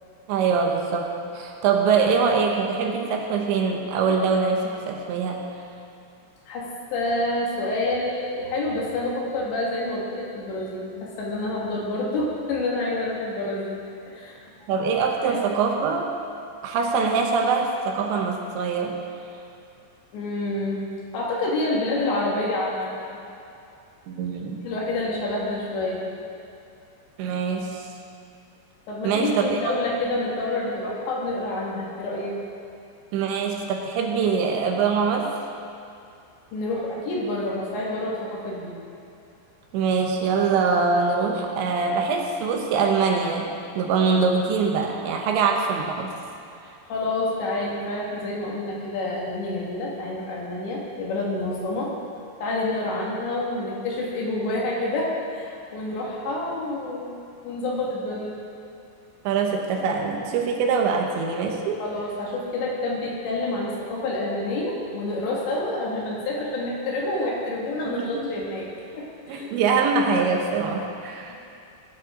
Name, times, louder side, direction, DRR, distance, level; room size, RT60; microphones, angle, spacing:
voice 1, 0.3-5.4 14.7-16.1 16.6-19.0 24.1-24.6 27.2-27.8 29.0-29.5 33.1-35.3 39.7-43.5 43.7-46.1 59.2-61.8 67.9-68.3 69.3-71.3, right 5 dB, 75° right, 1 dB, 3.2 m, -23 dB
voice 2, 6.5-13.8 14.1-14.4 15.2-15.4 20.1-20.8 21.1-23.2 24.6-26.3 28.9-32.4 36.5-38.8 46.8-51.9 52.4-57.2 57.4-58.3 61.8-68.7 68.9-69.5, left 2 dB, 70° left, -3 dB, 4.1 m, -28 dB
19.5 x 11.0 x 3.8 m, 2.6 s
omnidirectional pair, 5.5 m